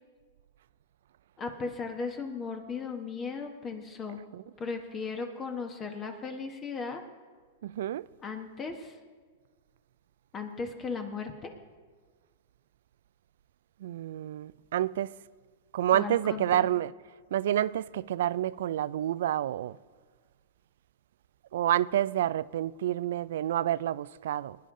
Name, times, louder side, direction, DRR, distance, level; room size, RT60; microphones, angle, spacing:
voice 1, 1.4-4.2 4.6-7.0 8.2-9.0 10.3-11.5 15.9-16.7, left 5 dB, 25° left, 1.2 m, -36 dB
voice 2, 7.6-8.1 13.8-15.1 15.7-16.9 17.3-19.8 21.5-24.6, right 12 dB, 75° right, 0.3 m, -28 dB
20.0 x 9.9 x 3.7 m
hypercardioid pair, 130°, 0 cm